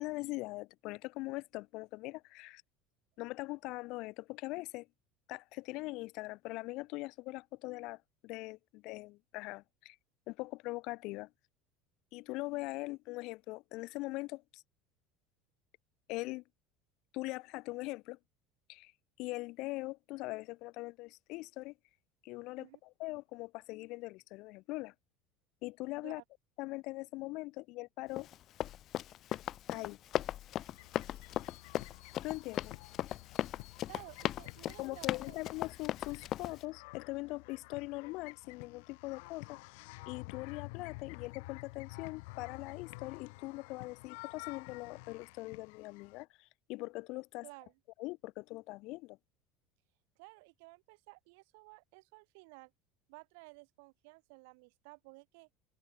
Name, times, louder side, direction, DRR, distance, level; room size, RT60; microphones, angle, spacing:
voice 1, 0.0-2.6 3.2-4.9 5.3-10.0 10.3-11.3 12.1-14.6 16.1-16.4 17.1-18.2 18.7-18.9 19.2-21.7 22.2-24.9 25.6-26.2 26.6-28.3 29.7-30.0 32.2-32.7 34.8-39.6 40.1-47.5 48.0-49.2, left 22 dB, 55° left, 0.3 m, -41 dB
Run, 28.2-36.6, left 12 dB, 35° left, 1.1 m, -38 dB
sound 1, 30.7-46.2, left 27 dB, 80° left, 3.3 m, -51 dB
voice 2, 33.9-35.4 47.4-47.7 50.2-52.7 53.1-55.5, right 30 dB, 75° right, 4.9 m, -54 dB
open air
cardioid pair, 160°, 0 cm